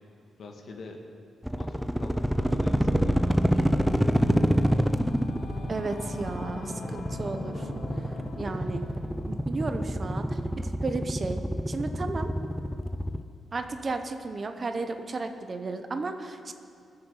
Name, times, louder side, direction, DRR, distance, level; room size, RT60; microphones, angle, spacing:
voice 1, 0.4-1.0 1.5-3.6, left 3 dB, 65° left, 2 dB, 1.6 m, -46 dB
sound 1, 1.4-13.2, equal, ahead, 0.5 m, -27 dB
Singing / Musical instrument, 3.6-13.1, left 3 dB, 85° left, 1.1 m, -46 dB
voice 2, 5.7-7.5 8.4-8.8 9.2-10.3 10.6-11.4 11.7-12.3 13.5-16.5, right 3 dB, 40° right, 7 dB, 0.8 m, -33 dB
16.5 x 6.8 x 7.2 m, 2.5 s
cardioid pair, 90°, 0 cm